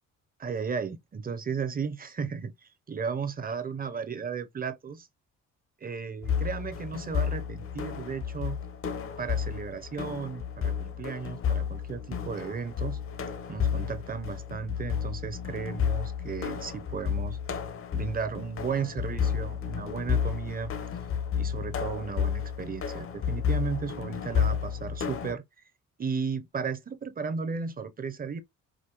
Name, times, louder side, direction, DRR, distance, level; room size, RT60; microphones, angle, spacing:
voice 1, 0.4-5.1 5.8-8.6 9.2-13.0 13.5-17.4 17.9-20.7 21.4-25.4 26.0-28.4, right 5 dB, 30° right, 0.7 m, -34 dB
sound 1, 6.2-25.3, left 7 dB, 45° left, 0.8 m, -31 dB
5.0 x 2.1 x 3.0 m
cardioid pair, 90°, 30 cm